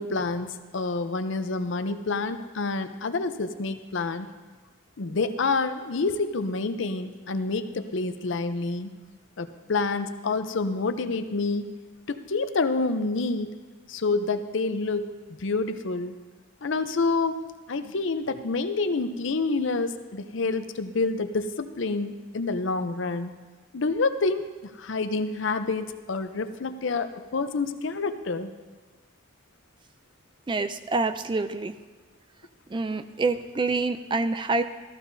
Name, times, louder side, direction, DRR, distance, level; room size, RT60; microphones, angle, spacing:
voice 1, 0.0-4.3 5.0-8.9 9.4-11.7 12.1-13.6 13.9-15.1 15.4-16.2 16.6-17.4 17.7-23.4 23.7-24.5 24.7-28.5, left 3 dB, 65° left, 10 dB, 0.6 m, -28 dB
voice 2, 30.5-31.7 32.7-34.6, right 3 dB, 25° right, 11 dB, 0.3 m, -27 dB
14.5 x 13.5 x 2.7 m, 1.4 s
head